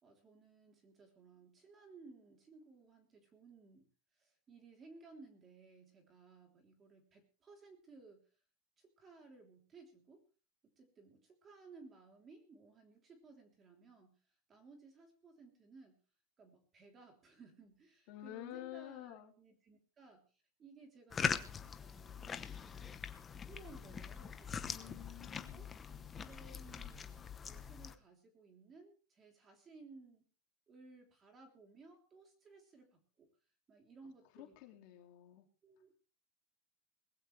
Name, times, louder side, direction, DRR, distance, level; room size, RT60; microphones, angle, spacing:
voice 1, 0.0-3.9 4.2-8.3 8.8-10.2 10.6-14.2 14.5-16.0 16.4-20.3 20.6-23.1 23.3-25.1 25.5-25.7 26.1-30.2 30.7-33.3 33.7-34.8 35.6-36.0, right 3 dB, 20° right, 3 dB, 3.4 m, -59 dB
voice 2, 18.1-19.3 24.6-26.1 34.4-35.5, left 14 dB, 45° left, 4 dB, 2.5 m, -50 dB
sound 1, 21.1-27.9, left 6 dB, 15° left, 0.9 m, -42 dB
20.5 x 15.5 x 3.3 m, 0.36 s
supercardioid pair, 180°, 0 cm